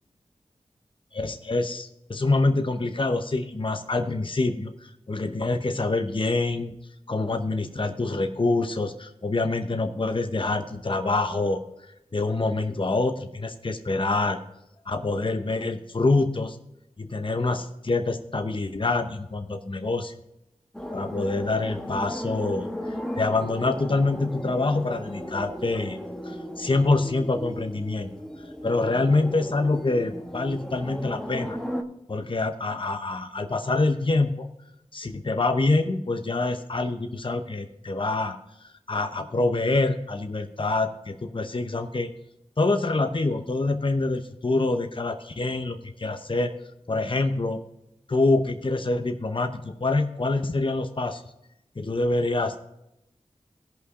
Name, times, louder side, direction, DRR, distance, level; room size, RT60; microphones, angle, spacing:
voice 1, 1.1-6.7 7.1-11.6 12.1-14.4 14.9-16.6 17.0-20.1 20.9-26.0 26.2-28.1 28.6-31.6 32.1-34.5 34.9-42.1 42.6-46.5 46.9-47.6 48.1-51.2 51.8-52.6, left 2 dB, 40° left, 6 dB, 0.8 m, -26 dB
sound 1, 20.7-31.8, equal, 5° left, 1.3 m, -36 dB
16.0 x 5.7 x 3.7 m, 0.84 s
wide cardioid pair, 45°, 13 cm